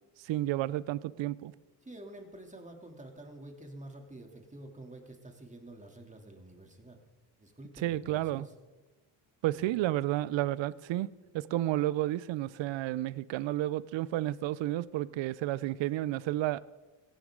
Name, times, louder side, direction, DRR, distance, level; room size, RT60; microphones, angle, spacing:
voice 1, 0.2-1.5 7.8-8.5 9.4-16.6, right 15 dB, 65° right, 0.7 m, -31 dB
voice 2, 1.8-7.0 7.4-8.5 9.5-9.7, right 1 dB, 15° right, 3.0 m, -49 dB
17.0 x 15.0 x 3.8 m
supercardioid pair, 80°, 49 cm